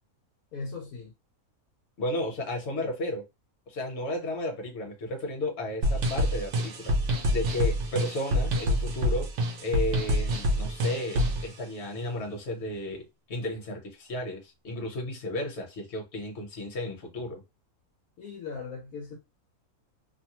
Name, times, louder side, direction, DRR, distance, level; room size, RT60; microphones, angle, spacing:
voice 1, 0.5-1.1 18.2-19.2, left 4 dB, 75° left, 1.0 m, -38 dB
voice 2, 2.0-3.3 3.7-6.9 7.3-9.3 9.6-17.4, left 1 dB, 50° left, 1.1 m, -33 dB
sound 1, 5.8-11.5, equal, 65° right, 0.8 m, -26 dB
2.7 x 2.1 x 2.8 m
omnidirectional pair, 1.6 m